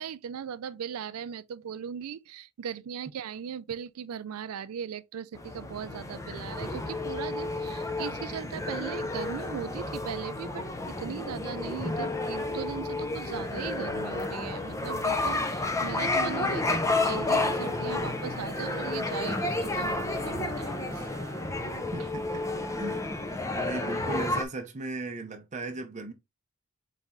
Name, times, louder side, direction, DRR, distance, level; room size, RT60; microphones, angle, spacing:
voice 1, 0.0-21.1, right 8 dB, 85° right, 0.4 m, -38 dB
sound 1, 5.4-24.4, left 2 dB, 15° left, 0.4 m, -31 dB
Bowed string instrument, 16.5-22.6, right 3 dB, 65° right, 1.1 m, -47 dB
voice 2, 21.9-22.4 22.8-23.0 23.5-26.1, right 2 dB, 35° right, 0.6 m, -37 dB
4.1 x 3.3 x 3.6 m
head